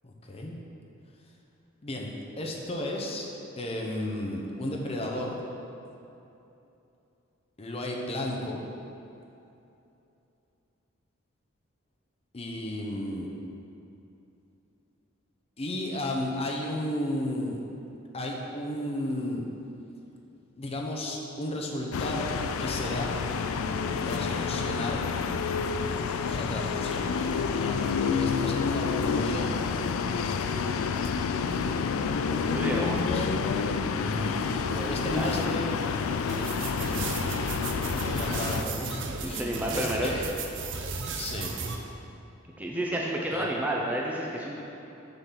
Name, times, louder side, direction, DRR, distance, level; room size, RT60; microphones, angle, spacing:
voice 1, 0.0-0.6 1.8-3.3 3.6-5.4 7.6-8.6 12.3-13.3 15.6-17.6 18.1-19.5 20.6-22.3 22.6-23.2 24.0-25.0 26.3-29.6 33.1-33.3 33.9-34.4 34.9-35.6 36.8-37.0 37.4-40.2 41.1-41.6 43.3-43.5, left 1 dB, 30° left, -1 dB, 0.7 m, -33 dB
sound 1, 21.9-38.6, left 5 dB, 75° left, 0.3 m, -29 dB
voice 2, 32.3-33.2 34.6-35.6 39.2-40.1 42.6-44.6, right 1 dB, 5° right, -3 dB, 0.5 m, -31 dB
sound 2, 36.3-41.8, right 4 dB, 60° right, 0.6 m, -35 dB
6.9 x 3.8 x 5.7 m, 2.9 s
head